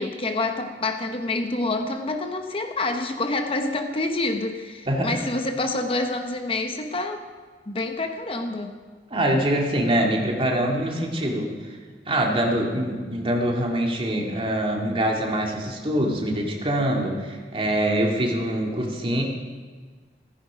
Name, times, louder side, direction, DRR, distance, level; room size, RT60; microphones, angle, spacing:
voice 1, 0.0-7.2 7.7-8.8, left 2 dB, 30° left, 6 dB, 0.9 m, -27 dB
voice 2, 9.1-11.8 12.1-19.2, right 1 dB, 30° right, 0 dB, 2.5 m, -24 dB
15.5 x 15.0 x 5.1 m, 1.5 s
head